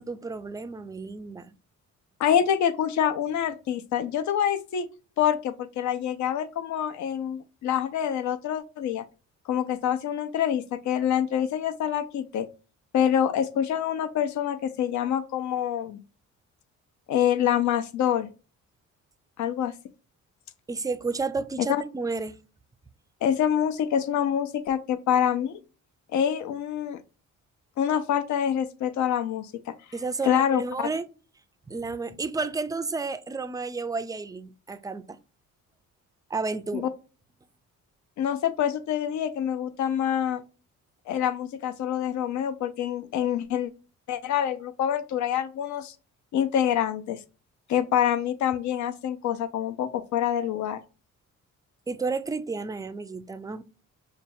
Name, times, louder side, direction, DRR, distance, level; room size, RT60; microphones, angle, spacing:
voice 1, 0.0-1.5 20.7-22.4 29.9-31.1 31.7-35.2 36.3-36.9 51.9-53.6, right 4 dB, 10° right, 0.4 m, -31 dB
voice 2, 2.2-4.9 5.2-9.0 9.5-12.5 12.9-16.0 17.1-18.3 19.4-19.7 21.7-21.8 23.2-25.6 26.1-27.0 27.8-29.7 30.2-30.9 36.7-36.9 38.2-40.4 41.1-43.7 44.1-45.9 46.3-47.2 47.7-50.8, left 9 dB, 70° left, 0.6 m, -26 dB
5.5 x 2.3 x 2.6 m
cardioid pair, 90°, 30 cm